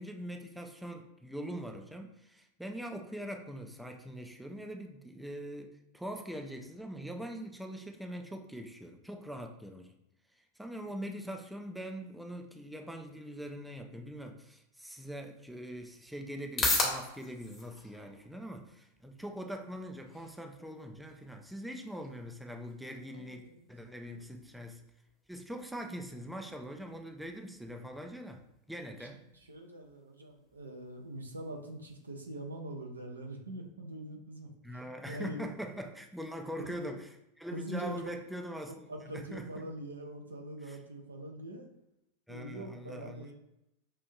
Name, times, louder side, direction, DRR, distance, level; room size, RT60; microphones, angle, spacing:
voice 1, 0.0-9.9 10.4-24.9 25.3-29.2 34.6-37.1 37.4-39.7 40.6-40.8 42.3-43.3, equal, ahead, 3 dB, 0.4 m, -43 dB
sound 1, 15.1-32.1, left 2 dB, 20° left, 1.0 m, -42 dB
voice 2, 23.1-23.6 24.2-24.3 29.0-29.1 29.5-34.8 35.1-35.5 36.7-37.0 37.5-38.1 38.7-41.7 42.3-43.3, right 1 dB, 75° right, 2 dB, 0.6 m, -43 dB
5.5 x 2.6 x 2.3 m, 0.85 s
figure-of-eight pair, 90°, 0 cm